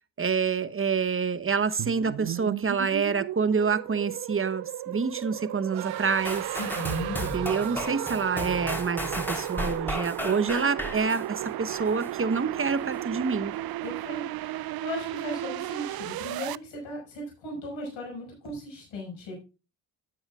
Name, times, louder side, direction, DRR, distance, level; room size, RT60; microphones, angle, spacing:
voice 1, 0.2-6.4 7.2-13.5, right 5 dB, 30° right, 1.0 m, -27 dB
sound 1, 1.8-16.6, right 14 dB, 55° right, 0.5 m, -35 dB
sound 2, 5.7-9.1, right 14 dB, 75° right, 1.0 m, -37 dB
sound 3, 6.2-12.1 12.6-12.7, left 1 dB, 5° left, 3.3 m, -34 dB
voice 2, 6.6-7.2 13.8-19.4, equal, 80° left, 5.4 m, -37 dB
12.5 x 8.6 x 2.4 m
supercardioid pair, 45°, 46 cm